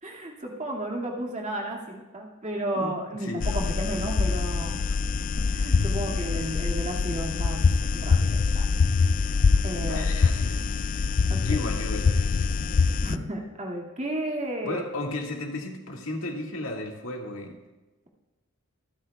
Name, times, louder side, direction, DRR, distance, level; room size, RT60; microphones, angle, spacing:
voice 1, 0.0-4.8 5.4-7.6 7.9-8.6 9.6-10.0 11.3-11.6 13.0-14.8, right 1 dB, 30° right, -1 dB, 2.2 m, -33 dB
voice 2, 2.8-3.6 9.8-11.2 11.4-12.6 12.9-13.0 14.6-17.6, left 2 dB, 70° left, 1 dB, 2.0 m, -35 dB
sound 1, 3.4-13.2, left 4 dB, 40° left, 0.3 m, -24 dB
25.5 x 9.9 x 2.3 m, 1.1 s
head